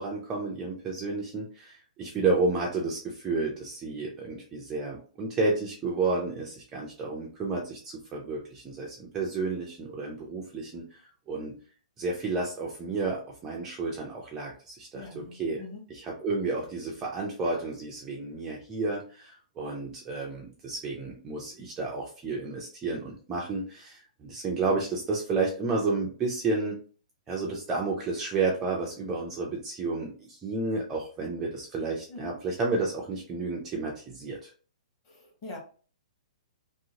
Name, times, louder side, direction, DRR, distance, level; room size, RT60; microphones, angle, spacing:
voice 1, 0.0-11.5 12.0-15.6 16.0-26.8 27.3-34.5, right 3 dB, 10° right, -2 dB, 0.3 m, -31 dB
voice 2, 14.9-15.9 32.1-32.4 35.0-35.6, left 3 dB, 25° left, -1 dB, 1.0 m, -43 dB
3.1 x 2.8 x 2.7 m, 0.39 s
hypercardioid pair, 175°, 4 cm